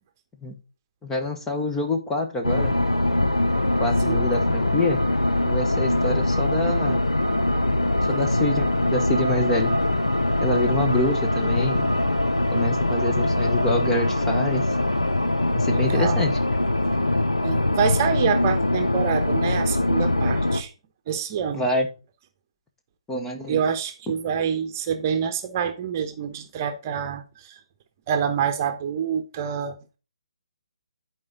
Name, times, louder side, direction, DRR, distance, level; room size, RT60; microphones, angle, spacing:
voice 1, 1.0-2.7 3.8-5.0 5.5-7.0 8.1-9.7 10.4-11.9 12.5-14.8 15.5-16.3 21.5-21.9 23.1-23.6, left 2 dB, 10° left, 1.0 m, -26 dB
sound 1, 2.4-20.6, left 1 dB, 80° left, 0.9 m, -22 dB
voice 2, 15.9-16.2 17.4-20.7 21.1-21.7 23.5-27.6 28.1-29.8, right 7 dB, 30° right, 1.0 m, -26 dB
11.0 x 4.8 x 3.9 m
figure-of-eight pair, 140°, 3 cm